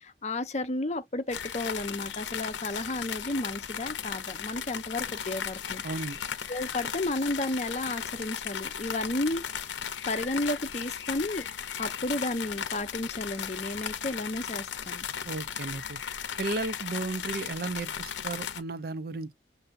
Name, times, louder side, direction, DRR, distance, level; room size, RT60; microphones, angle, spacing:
voice 1, 0.0-5.8 6.5-9.4 10.1-11.5 11.8-15.1, left 2 dB, 40° left, 0.7 m, -32 dB
sound 1, 1.3-18.6, left 8 dB, 90° left, 0.6 m, -36 dB
voice 2, 5.8-6.2 15.2-16.0 16.4-19.3, right 3 dB, 55° right, 0.5 m, -34 dB
6.7 x 2.7 x 2.5 m
head